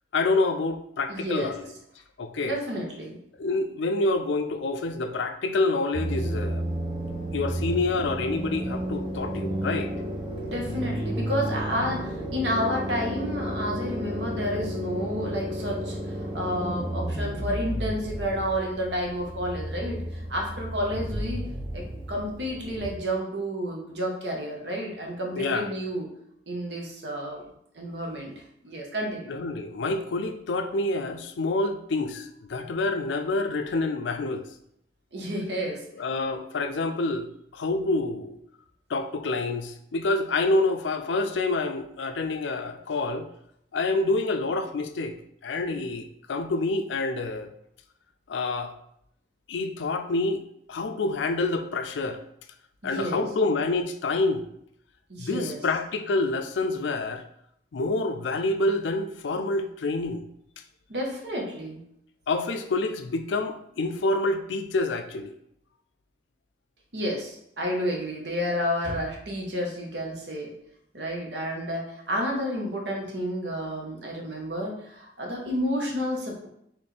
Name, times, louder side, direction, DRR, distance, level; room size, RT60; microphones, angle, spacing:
voice 1, 0.1-1.7 2.2-2.6 3.4-6.7 7.3-9.9 25.4-25.7 29.3-34.5 36.0-37.3 37.5-38.4 38.9-43.3 43.7-45.2 45.4-47.5 48.3-48.7 49.5-50.4 50.7-52.2 52.8-54.4 55.2-57.2 57.7-60.2 62.3-65.3, left 2 dB, 85° left, 8 dB, 0.4 m, -27 dB
voice 2, 1.1-1.5 2.4-3.2 10.4-21.4 21.7-26.1 26.5-27.4 27.7-28.3 28.6-29.3 35.1-35.8 45.7-45.8 52.8-53.3 55.1-55.6 60.9-61.8 66.9-70.5 70.9-76.5, equal, 75° right, 0 dB, 1.0 m, -30 dB
sound 1, 5.9-22.9, right 1 dB, 30° right, 0.7 m, -32 dB
4.3 x 3.1 x 3.3 m, 0.73 s
head